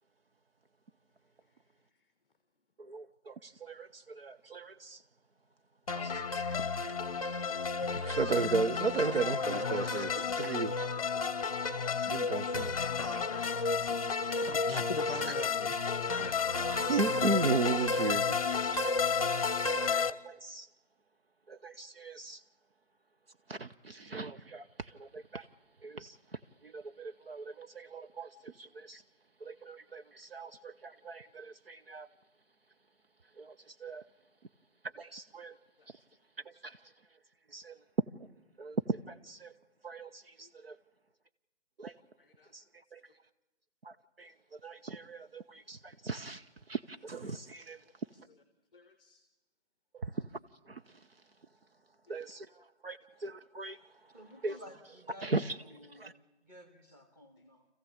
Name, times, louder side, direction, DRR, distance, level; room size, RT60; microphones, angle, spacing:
voice 1, 2.8-5.0 6.0-6.7 7.8-10.9 11.1-11.2 11.7-13.1 13.4-13.6 14.3-14.8 16.8-18.4 19.8-20.7 21.5-22.4 23.5-25.4 25.8-26.2 26.6-29.0 29.4-32.1 33.4-33.5 33.8-34.0 35.0-35.5 36.5-36.8 37.5-37.8 38.6-39.5 39.8-40.8 41.8-41.9 42.5-42.6 42.9-43.0 43.8-44.3 44.6-46.4 46.7-47.8 50.0-50.3 50.7-50.8 52.1-52.5 52.8-53.8 54.4-54.6 55.2-55.6 55.9-56.1, right 3 dB, 55° right, 0.9 m, -37 dB
sound 1, 5.9-20.1, left 5 dB, 30° left, 0.8 m, -32 dB
voice 2, 14.4-15.8 16.2-16.4 17.9-18.0 18.2-18.4 35.8-35.9 40.4-40.5 42.2-42.5 48.3-48.4 48.7-49.2 52.1-52.2 54.1-54.6, left 4 dB, 5° left, 0.8 m, -44 dB
voice 3, 54.1-56.2 56.4-57.7, equal, 15° right, 1.8 m, -53 dB
25.5 x 15.0 x 8.6 m
figure-of-eight pair, 160°, 35 cm